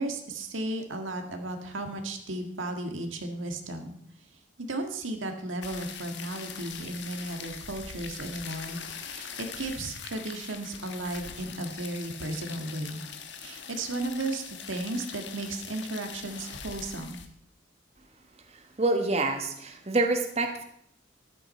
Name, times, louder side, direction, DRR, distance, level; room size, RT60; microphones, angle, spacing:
voice 1, 0.0-4.0 4.6-13.0 13.3-17.2, right 2 dB, 90° right, 5 dB, 1.8 m, -35 dB
sound 1, 5.6-17.3, left 7 dB, 65° left, 1.4 m, -42 dB
voice 2, 18.8-20.6, right 2 dB, 30° right, 5 dB, 1.2 m, -26 dB
13.5 x 11.5 x 4.3 m, 0.71 s
head